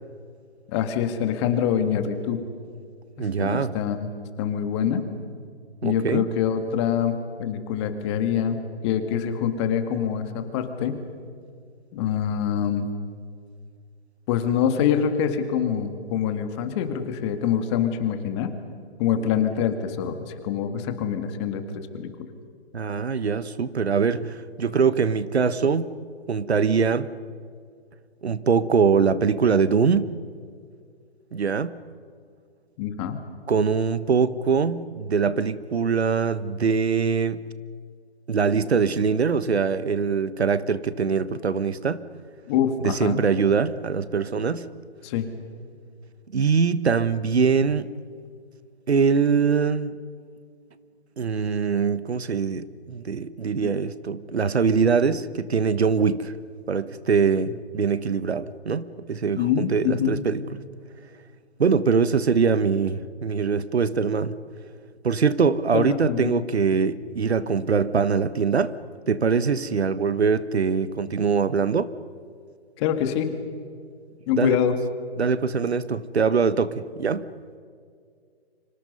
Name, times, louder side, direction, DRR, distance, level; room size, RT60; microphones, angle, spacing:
voice 1, 0.7-2.4 3.4-4.1 4.4-5.0 5.8-11.0 11.9-12.9 14.3-18.5 19.0-21.6 21.9-22.3 32.8-33.2 42.5-43.2 45.0-45.3 53.6-53.7 59.4-60.2 65.7-66.5 72.8-73.3 74.3-74.7, left 8 dB, 25° left, 8 dB, 2.1 m, -25 dB
voice 2, 3.2-3.8 5.8-6.3 22.7-25.9 26.3-27.1 28.2-30.1 31.3-31.8 33.5-37.4 38.3-42.0 42.8-44.7 46.3-47.9 48.9-50.0 51.2-56.3 56.7-60.4 61.6-64.4 65.0-68.7 69.1-71.9 74.3-74.6 75.2-77.2, right 5 dB, 75° right, 15 dB, 1.3 m, -23 dB
29.5 x 25.5 x 5.5 m, 2.2 s
figure-of-eight pair, 145°, 32 cm